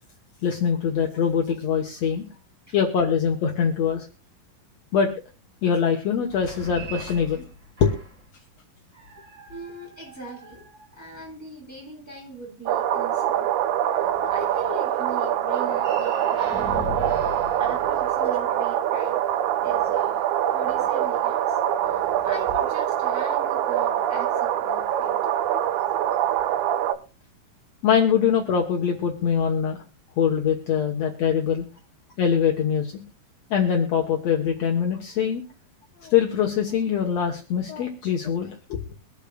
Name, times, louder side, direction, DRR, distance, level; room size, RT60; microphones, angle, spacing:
voice 1, 0.4-2.3 2.7-4.1 4.9-5.1 5.6-7.4 7.8-7.9 27.8-29.8 30.2-31.6 32.2-32.9 33.5-35.4 36.0-38.8, left 7 dB, 70° left, 2 dB, 1.6 m, -23 dB
sound 1, 6.3-8.3 8.9-11.3 15.4-18.6, equal, 30° right, 5.0 m, -39 dB
voice 2, 9.5-10.6 10.9-13.5 14.3-17.0 17.6-19.2 19.6-20.2 20.5-21.4 21.9-25.2, right 1 dB, 5° right, -3 dB, 7.8 m, -40 dB
sound 2, 12.7-26.9, right 11 dB, 90° right, 1.7 m, -24 dB
23.5 x 8.5 x 2.3 m, 0.33 s
omnidirectional pair, 4.5 m